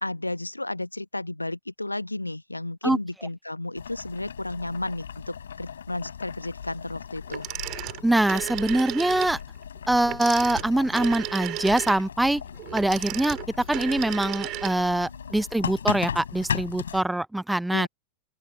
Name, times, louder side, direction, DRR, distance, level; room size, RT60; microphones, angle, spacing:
voice 1, 0.0-7.5 14.7-15.2 17.7-17.9, left 2 dB, 85° left, 1.1 m, -33 dB
Boiling, 3.8-17.0, left 8 dB, 70° left, 4.8 m, -37 dB
Telephone, 7.3-9.4 10.0-15.1, right 17 dB, 35° right, 4.9 m, -34 dB
voice 2, 8.0-9.4 9.9-12.4 12.7-13.4 13.7-17.9, right 1 dB, 5° right, 0.5 m, -24 dB
open air
figure-of-eight pair, 90°, 0 cm